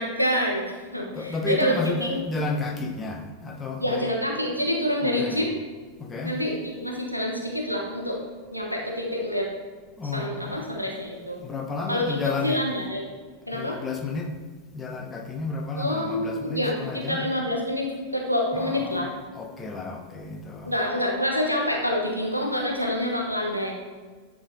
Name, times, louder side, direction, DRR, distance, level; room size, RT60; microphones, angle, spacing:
voice 1, 0.0-1.7 2.0-2.2 3.8-5.5 6.2-8.2 8.5-9.5 10.1-11.4 11.9-13.1 13.5-13.8 15.7-19.1 20.6-23.7, equal, 90° left, -1 dB, 1.1 m, -27 dB
voice 2, 1.1-4.1 5.0-5.5 6.0-6.4 10.0-10.8 11.4-12.6 13.5-14.3 14.7-17.2 18.5-20.7, left 3 dB, 20° left, 2 dB, 0.9 m, -32 dB
9.8 x 3.9 x 3.9 m, 1.5 s
figure-of-eight pair, 90°, 0 cm